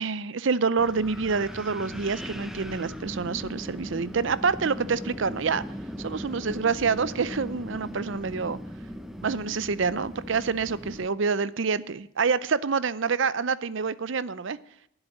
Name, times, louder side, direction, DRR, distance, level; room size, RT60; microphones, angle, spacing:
voice 1, 0.0-5.6 6.0-8.6 9.2-14.6, right 5 dB, 60° right, 17 dB, 0.6 m, -27 dB
Wind, 0.8-11.1, equal, ahead, 0.6 m, -38 dB
11.0 x 8.0 x 10.0 m, 0.75 s
head